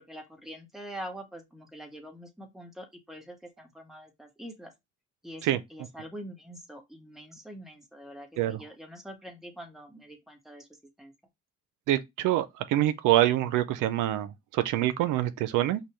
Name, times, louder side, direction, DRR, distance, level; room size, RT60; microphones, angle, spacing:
voice 1, 0.0-4.7 5.2-10.7 11.0-11.1, equal, ahead, 1.4 m, -44 dB
voice 2, 11.9-15.8, right 14 dB, 85° right, 0.5 m, -26 dB
5.3 x 2.2 x 3.0 m
cardioid pair, 90°, 30 cm